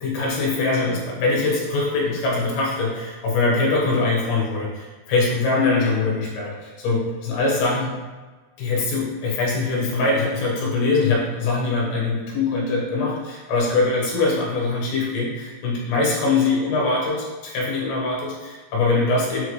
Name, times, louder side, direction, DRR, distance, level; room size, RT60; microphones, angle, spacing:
voice 1, 0.0-7.9 8.6-19.4, left 3 dB, 65° left, -3 dB, 2.7 m, -22 dB
7.9 x 4.6 x 3.2 m, 1.3 s
omnidirectional pair, 5.6 m